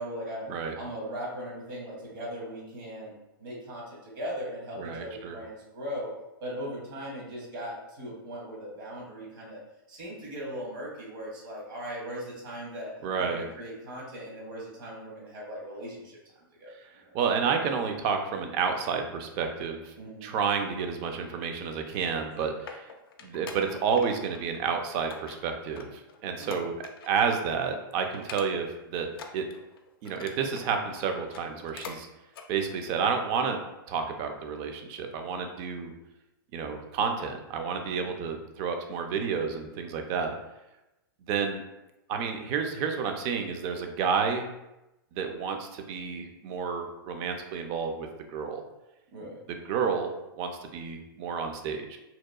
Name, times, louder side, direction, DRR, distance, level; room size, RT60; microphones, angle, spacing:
voice 1, 0.0-0.5 0.7-3.1 3.4-6.1 6.4-9.6 9.9-16.2 16.6-16.7 17.0-17.1 20.0-20.3 26.4-26.7 37.9-38.3 49.1-49.4, equal, 65° right, -4 dB, 1.0 m, -39 dB
voice 2, 4.8-5.4 13.0-13.5 16.8-16.9 17.1-19.9 20.2-22.9 23.2-26.7 27.0-29.1 29.3-29.4 30.0-32.1 32.5-33.6 33.9-35.9 36.5-40.3 41.3-41.6 42.1-44.5 45.1-48.6 49.5-52.0, right 6 dB, 40° right, 5 dB, 0.4 m, -30 dB
sound 1, 22.3-24.1 24.3-24.7 25.1-27.3 27.6-27.7 28.1-28.8 29.1-30.7 31.2-32.0 32.3-32.5 33.0-33.1, left 5 dB, 80° left, 0.4 m, -45 dB
2.8 x 2.2 x 2.3 m, 0.95 s
hypercardioid pair, 130°, 12 cm